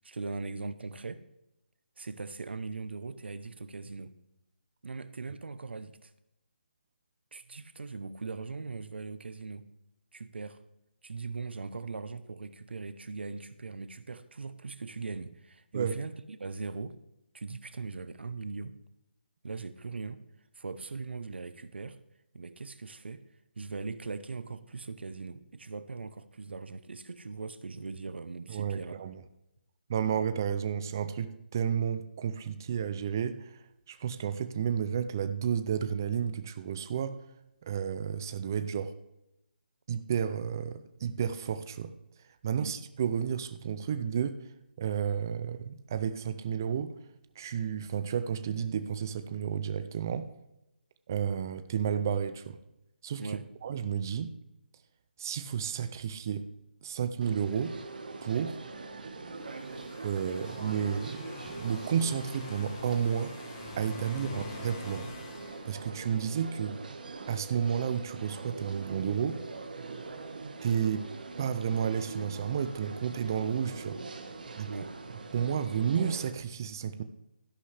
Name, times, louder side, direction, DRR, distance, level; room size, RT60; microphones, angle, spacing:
voice 1, 0.0-1.2 2.0-4.1 4.8-6.1 7.3-9.6 10.1-10.6 11.0-17.0 17.3-18.7 19.4-20.2 20.6-22.0 22.3-23.2 23.6-29.0 42.6-42.8 53.2-53.4 64.2-64.4 74.7-74.9, right 4 dB, 75° right, 0.8 m, -40 dB
voice 2, 28.5-29.2 29.9-33.6 33.9-37.1 37.6-38.9 39.9-41.9 42.4-44.4 44.8-46.9 47.4-50.3 51.1-52.6 53.0-54.3 55.2-56.5 56.8-57.8 58.2-58.6 60.0-63.3 63.8-65.1 65.7-66.8 67.3-69.4 70.6-71.1 71.4-74.0 74.6-74.7 75.3-77.0, right 8 dB, 20° right, 0.4 m, -31 dB
sound 1, 57.2-76.3, right 3 dB, 50° right, 1.5 m, -43 dB
sound 2, 59.3-66.2, left 3 dB, 20° left, 1.2 m, -45 dB
12.5 x 11.0 x 3.4 m
hypercardioid pair, 175°, 6 cm